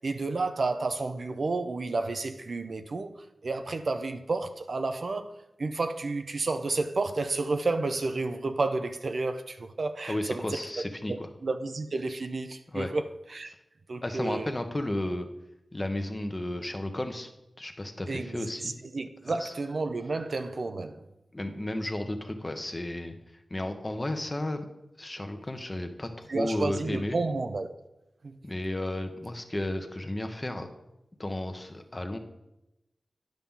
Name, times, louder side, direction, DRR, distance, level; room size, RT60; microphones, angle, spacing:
voice 1, 0.0-5.3 5.6-13.0 13.3-13.5 13.9-14.6 18.1-21.0 26.3-27.7 28.2-28.4, right 3 dB, 65° right, 0.5 m, -31 dB
voice 2, 10.1-11.3 12.7-12.9 14.0-15.3 15.7-17.3 17.6-18.8 19.4-19.5 21.3-23.2 23.5-24.6 25.0-27.2 28.4-30.7 31.2-32.2, left 1 dB, 25° left, 0.9 m, -33 dB
10.5 x 5.7 x 3.7 m
wide cardioid pair, 65°, 0 cm